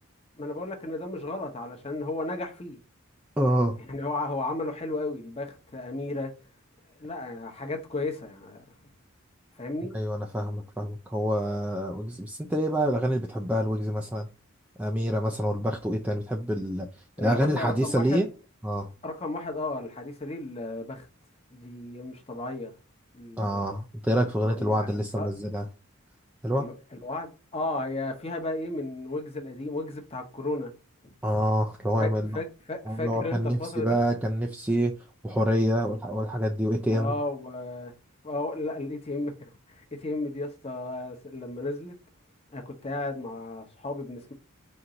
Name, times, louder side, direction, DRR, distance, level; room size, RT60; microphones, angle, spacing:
voice 1, 0.4-2.8 3.9-6.3 7.0-8.7 9.6-9.9 17.2-18.2 19.0-21.1 21.5-22.7 23.1-23.6 24.4-24.9 25.2-25.3 26.5-30.7 32.0-34.0 36.9-37.9 38.2-39.3 39.7-42.0 42.5-44.3, left 2 dB, 30° left, 0.9 m, -34 dB
voice 2, 3.4-3.8 9.9-14.3 14.8-16.9 17.2-18.3 18.6-18.9 23.4-25.7 26.4-26.7 31.2-32.3 32.9-34.9 35.2-37.1, equal, 5° right, 0.3 m, -27 dB
4.4 x 2.6 x 3.7 m
head